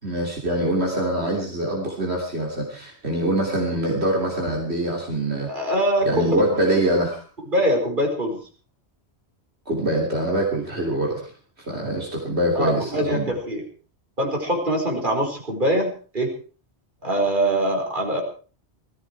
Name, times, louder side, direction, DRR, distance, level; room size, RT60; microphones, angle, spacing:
voice 1, 0.0-5.5 6.0-7.2 9.7-11.3 11.7-13.3, right 1 dB, 70° right, -1 dB, 3.5 m, -24 dB
voice 2, 5.4-6.3 7.5-8.4 12.5-13.6 14.2-16.3 17.0-18.2, right 1 dB, 45° right, 1 dB, 5.1 m, -23 dB
19.5 x 14.5 x 4.7 m, 0.39 s
omnidirectional pair, 1.1 m